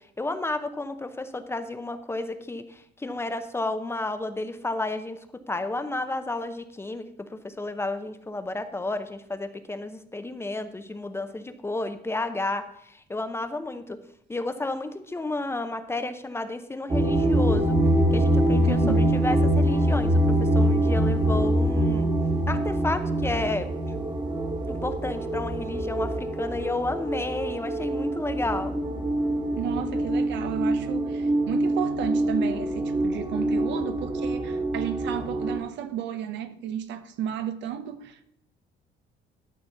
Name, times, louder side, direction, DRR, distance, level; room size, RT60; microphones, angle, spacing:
voice 1, 0.0-5.2 5.5-14.0 14.3-17.8 18.1-22.1 22.5-23.7 24.7-28.7, left 2 dB, 15° left, 0.7 m, -32 dB
sound 1, 16.9-35.6, right 1 dB, 25° right, 1.5 m, -24 dB
voice 2, 18.6-19.2 29.5-38.2, right 9 dB, 75° right, 0.9 m, -33 dB
12.0 x 4.2 x 7.0 m
cardioid pair, 135°, 19 cm